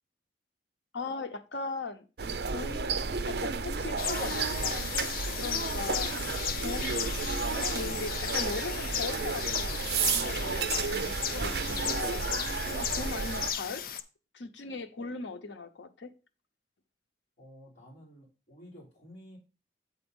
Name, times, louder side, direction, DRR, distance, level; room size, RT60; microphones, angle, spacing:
voice 1, 0.9-2.0 2.5-4.9 5.3-6.1 6.6-13.9 14.3-16.1, left 4 dB, 90° left, 0.9 m, -39 dB
sound 1, 2.2-13.5, right 5 dB, 65° right, 0.6 m, -32 dB
sound 2, 4.0-14.0, left 9 dB, 50° left, 0.5 m, -35 dB
voice 2, 17.4-19.4, equal, 35° left, 3.4 m, -52 dB
8.3 x 4.0 x 5.3 m
head